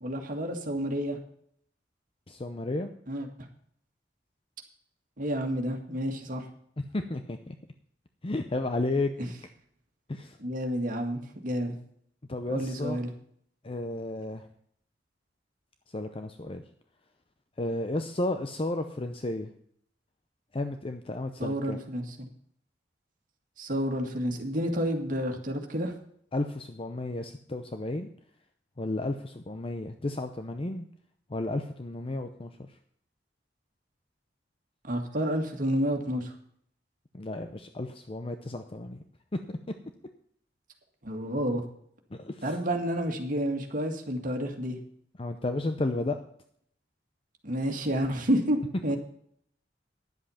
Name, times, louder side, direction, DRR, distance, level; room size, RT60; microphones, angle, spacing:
voice 1, 0.0-1.2 3.1-3.3 5.2-6.4 9.2-9.3 10.4-11.7 12.5-13.1 21.4-22.0 23.6-25.9 34.8-36.3 41.0-41.6 42.4-44.8 47.4-48.6 48.8-49.0, equal, 50° right, 3 dB, 1.9 m, -30 dB
voice 2, 2.3-2.9 6.8-7.5 8.2-9.1 10.1-10.4 12.3-13.0 13.6-14.5 15.9-16.6 17.6-19.5 20.5-21.8 26.3-28.1 28.8-30.9 31.3-32.7 37.1-39.0 39.5-39.6 42.1-42.5 45.2-46.2, left 2 dB, 30° left, 7 dB, 0.7 m, -32 dB
11.0 x 7.8 x 5.7 m, 0.65 s
head